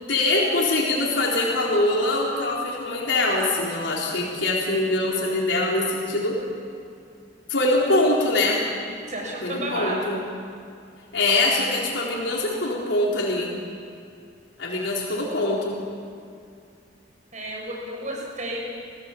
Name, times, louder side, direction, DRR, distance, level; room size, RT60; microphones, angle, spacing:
voice 1, 0.0-6.4 7.5-8.6 9.4-10.2 11.1-13.5 14.6-15.8, left 2 dB, 85° left, -3 dB, 4.1 m, -23 dB
voice 2, 9.1-10.1 14.8-14.9 17.3-18.6, right 1 dB, 40° right, -1 dB, 6.4 m, -31 dB
28.0 x 18.0 x 7.4 m, 2.4 s
head